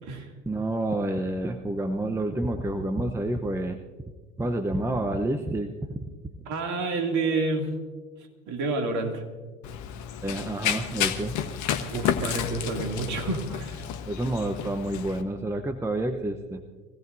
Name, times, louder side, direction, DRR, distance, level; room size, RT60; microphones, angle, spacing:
voice 1, 0.5-3.8 4.4-6.0 10.2-11.4 14.0-16.6, right 1 dB, 5° right, 6 dB, 0.8 m, -29 dB
voice 2, 6.5-7.7 8.5-9.2 11.9-13.8, right 3 dB, 45° right, 3 dB, 2.7 m, -29 dB
Run, 9.6-15.2, left 9 dB, 45° left, 1.3 m, -31 dB
24.0 x 17.0 x 2.7 m, 1.4 s
figure-of-eight pair, 75°, 39 cm